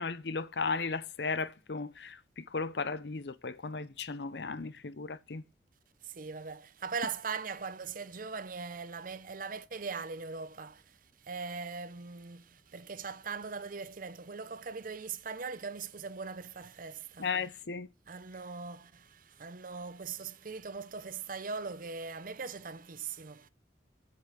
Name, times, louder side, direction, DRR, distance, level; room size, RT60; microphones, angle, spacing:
voice 1, 0.0-5.4 17.2-17.9, left 4 dB, 65° left, 0.7 m, -35 dB
voice 2, 6.0-17.3 18.1-23.5, right 5 dB, 50° right, 0.7 m, -40 dB
8.5 x 8.3 x 5.0 m
head